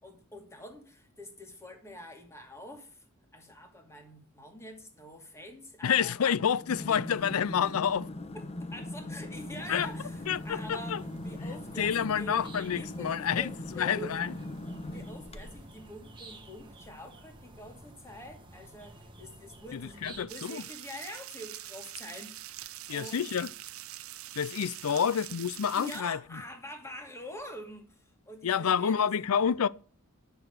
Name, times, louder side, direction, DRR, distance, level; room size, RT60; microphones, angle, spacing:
voice 1, 0.0-3.0 3.3-6.2 8.3-11.0 11.2-12.5 12.7-14.2 14.9-22.6 22.9-23.3 24.8-25.0 25.7-29.1, left 1 dB, 15° left, 2.4 m, -45 dB
voice 2, 5.8-8.1 9.7-9.9 10.3-11.0 11.8-14.3 19.7-20.6 22.9-23.5 24.4-26.4 28.4-29.7, left 7 dB, 80° left, 0.5 m, -29 dB
sound 1, 6.6-15.8, left 1 dB, 30° left, 0.9 m, -40 dB
sound 2, 9.3-20.2, right 2 dB, 25° right, 1.7 m, -51 dB
sound 3, 20.3-26.0, right 14 dB, 75° right, 0.7 m, -44 dB
11.0 x 7.0 x 6.4 m
head